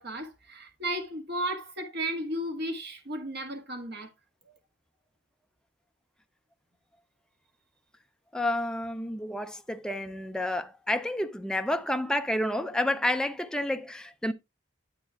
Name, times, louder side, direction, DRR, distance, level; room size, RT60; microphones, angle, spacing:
voice 1, 0.0-4.1, right 1 dB, 60° right, 1.7 m, -34 dB
voice 2, 8.3-14.3, left 1 dB, 5° left, 0.5 m, -30 dB
9.5 x 8.4 x 2.3 m
head